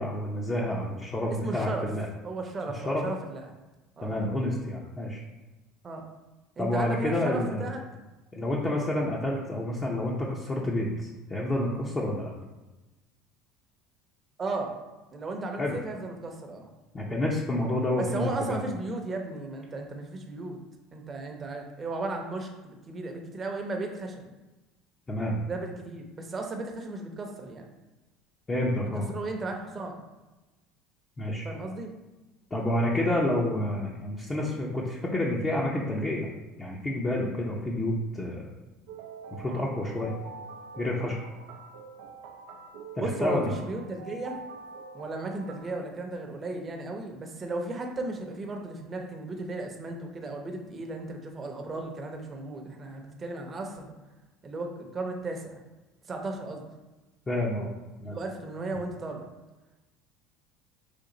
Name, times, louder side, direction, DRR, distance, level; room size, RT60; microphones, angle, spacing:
voice 1, 0.0-2.1 2.7-3.0 4.0-5.2 6.6-7.7 8.3-12.3 15.6-15.8 16.9-18.6 25.1-25.4 28.5-29.1 31.2-31.5 32.5-36.3 36.6-38.5 39.3-40.1 40.8-41.2 43.0-43.6 57.3-57.7 58.0-58.2, left 1 dB, 25° left, -4 dB, 0.7 m, -29 dB
voice 2, 1.3-1.9 2.2-3.5 4.0-4.2 5.8-6.1 6.6-7.8 14.4-14.7 15.1-16.7 18.0-20.6 20.9-24.3 25.4-27.7 29.1-30.0 31.4-31.9 43.0-44.4 44.9-53.9 54.4-55.6 56.1-56.6 58.0-59.3, right 2 dB, 30° right, 2 dB, 0.8 m, -35 dB
sound 1, 38.9-45.6, right 4 dB, 80° right, 0.5 m, -45 dB
5.1 x 2.5 x 3.9 m, 1.1 s
supercardioid pair, 100°, 0 cm